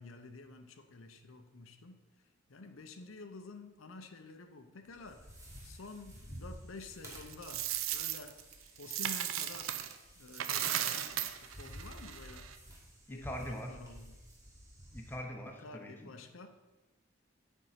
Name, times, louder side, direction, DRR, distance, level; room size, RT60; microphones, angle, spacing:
voice 1, 0.0-2.0 2.5-5.3 5.6-8.4 8.8-12.5 13.1-14.2 15.4-16.5, left 3 dB, 85° left, 6 dB, 0.7 m, -50 dB
sound 1, 4.9-15.1, equal, 15° right, 1.5 m, -52 dB
Coin (dropping), 7.1-10.0 10.3-12.6, right 11 dB, 85° right, 0.5 m, -36 dB
voice 2, 13.1-13.7 14.9-16.1, equal, 10° left, 2 dB, 0.8 m, -42 dB
8.2 x 4.5 x 5.7 m, 1.1 s
head